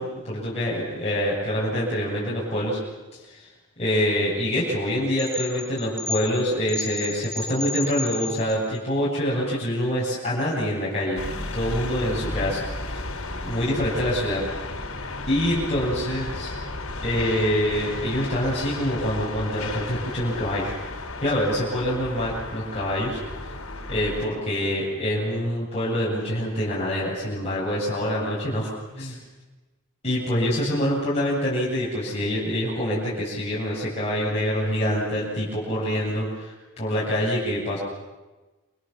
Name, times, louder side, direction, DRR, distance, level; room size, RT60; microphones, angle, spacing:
voice 1, 0.0-2.8 3.1-3.5 3.8-11.2 11.5-13.0 13.4-14.4 15.3-16.5 17.0-20.8 21.2-23.2 23.9-29.2 30.0-37.8, equal, 30° left, -7 dB, 7.9 m, -25 dB
sound 1, 5.2-8.8, left 2 dB, 5° left, 3.1 m, -32 dB
sound 2, 11.2-24.2, left 2 dB, 75° left, 4.6 m, -34 dB
28.5 x 28.0 x 7.4 m, 1.2 s
head